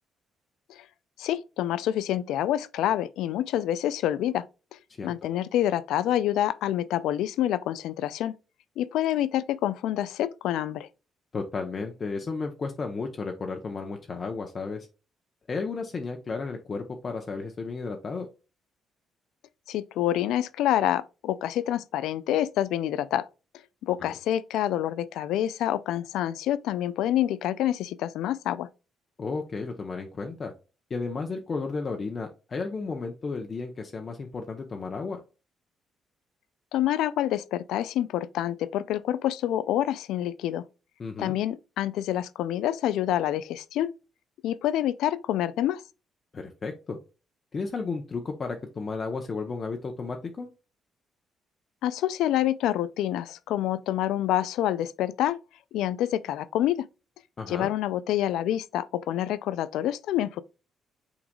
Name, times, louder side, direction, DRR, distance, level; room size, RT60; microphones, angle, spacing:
voice 1, 1.2-4.5 4.7-8.3 8.8-10.9 19.7-23.3 23.8-28.7 36.7-40.6 41.2-43.9 44.4-45.8 51.8-55.4 55.7-56.9 57.5-60.4, left 12 dB, 90° left, 0.3 m, -27 dB
voice 2, 11.3-14.9 15.5-18.3 24.0-24.1 29.2-30.5 30.9-35.2 41.0-41.4 46.3-47.0 47.5-50.5 57.4-57.7, left 4 dB, 40° left, 0.8 m, -33 dB
6.0 x 3.9 x 2.3 m
cardioid pair, 90°, 0 cm